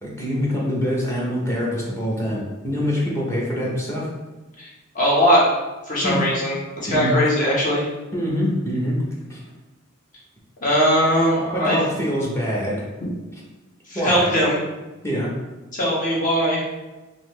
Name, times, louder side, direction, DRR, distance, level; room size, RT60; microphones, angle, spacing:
voice 1, 0.0-4.1 6.0-6.2 6.9-7.2 8.1-9.0 9.3-9.4 11.5-12.9 13.9-14.3 15.0-15.3, equal, 15° left, -5 dB, 0.8 m, -24 dB
voice 2, 4.9-5.4 5.9-6.5 6.8-7.8 10.6-11.8 13.9-14.6 15.7-16.6, equal, 40° left, -6 dB, 1.2 m, -19 dB
4.0 x 2.7 x 3.2 m, 1.1 s
head